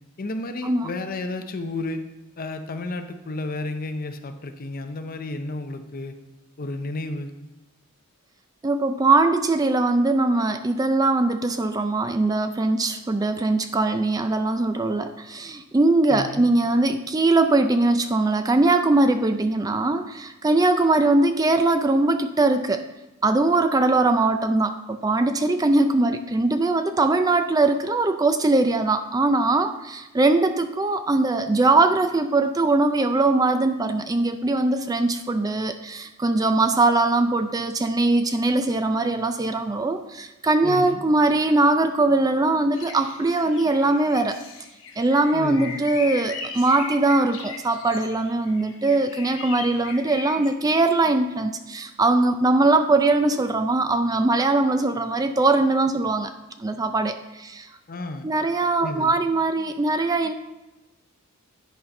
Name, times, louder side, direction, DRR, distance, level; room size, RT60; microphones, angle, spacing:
voice 1, 0.2-2.0 2.4-6.2 6.6-7.3 16.1-16.5 40.6-41.0 45.3-45.9 57.9-58.3 58.8-59.2, left 2 dB, 40° left, 8 dB, 0.6 m, -32 dB
voice 2, 8.6-22.8 23.2-44.4 45.0-56.3 56.6-57.7 58.2-60.3, right 2 dB, 15° right, 8 dB, 0.3 m, -21 dB
sound 1, 42.7-50.5, left 4 dB, 60° left, 1.0 m, -38 dB
10.5 x 4.2 x 5.3 m, 1.0 s
head